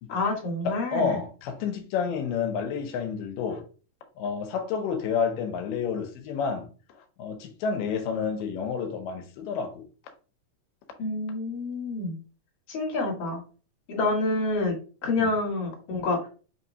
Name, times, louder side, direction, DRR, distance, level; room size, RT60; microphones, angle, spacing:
voice 1, 0.1-1.2 11.0-12.2 12.7-13.4 13.9-16.3, left 2 dB, 50° left, 2.5 m, -28 dB
voice 2, 0.7-3.6 4.2-6.7 7.0-9.9 15.2-15.3, left 6 dB, 90° left, 2.3 m, -30 dB
5.8 x 2.9 x 2.7 m
omnidirectional pair, 3.8 m